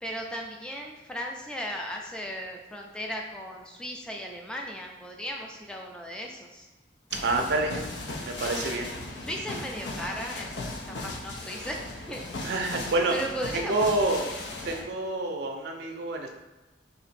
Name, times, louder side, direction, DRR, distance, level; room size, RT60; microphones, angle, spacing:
voice 1, 0.0-6.7 9.2-11.8 12.1-12.2 13.1-14.0, equal, 5° left, 0 dB, 0.3 m, -36 dB
sound 1, 7.1-14.8, left 2 dB, 70° left, 0.5 m, -37 dB
voice 2, 7.2-7.8 8.3-8.9 12.4-13.2 13.5-14.2 14.6-16.3, right 2 dB, 65° right, 2 dB, 0.4 m, -27 dB
2.9 x 2.5 x 4.1 m, 1.1 s
head